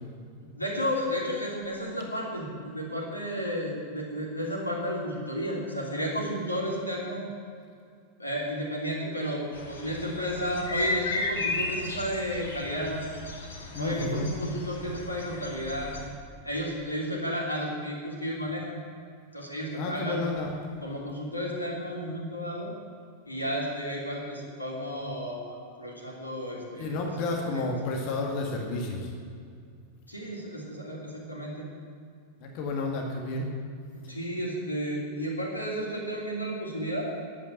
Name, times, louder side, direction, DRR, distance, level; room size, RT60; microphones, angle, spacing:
voice 1, 0.5-7.2 8.2-13.0 13.8-15.9 16.4-18.8 19.3-20.2 20.8-22.7 23.3-27.1 27.5-27.7 30.1-31.7 34.1-37.0, equal, 85° left, -3 dB, 3.1 m, -32 dB
sound 1, 9.5-16.1, left 2 dB, 70° left, 2.1 m, -35 dB
voice 2, 13.7-14.3 19.7-20.5 26.8-29.1 32.4-33.5, left 2 dB, 45° left, 1 dB, 1.9 m, -31 dB
10.5 x 9.3 x 7.8 m, 2.3 s
figure-of-eight pair, 90°, 0 cm